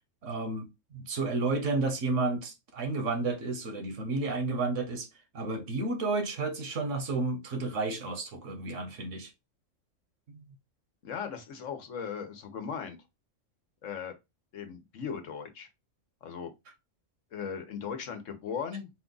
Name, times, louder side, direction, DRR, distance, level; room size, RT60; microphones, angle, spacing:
voice 1, 0.2-0.7 0.9-5.1 5.3-9.3 10.3-10.4, right 3 dB, 75° right, 1.3 m, -31 dB
voice 2, 11.0-13.0 13.8-14.1 14.5-15.7 16.2-16.5 17.3-18.9, left 7 dB, 75° left, 1.2 m, -37 dB
4.4 x 2.4 x 3.8 m
omnidirectional pair, 1.3 m